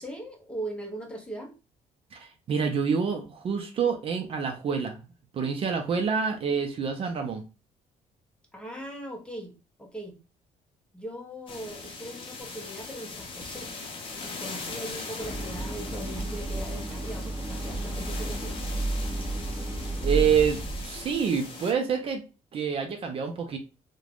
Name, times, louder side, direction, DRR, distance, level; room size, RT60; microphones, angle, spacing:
voice 1, 0.0-1.5 8.5-9.5 9.8-10.2 10.9-13.7 14.2-18.6, right 1 dB, 5° left, 0 dB, 0.7 m, -39 dB
voice 2, 2.1-5.0 5.3-7.4 20.0-22.2 22.5-23.6, right 6 dB, 45° right, 4 dB, 0.5 m, -27 dB
sound 1, 11.5-21.7, left 4 dB, 40° left, 0.6 m, -40 dB
Idling, 15.2-21.3, right 2 dB, 20° right, 0.8 m, -32 dB
3.2 x 2.1 x 2.4 m, 0.31 s
cardioid pair, 120°, 13 cm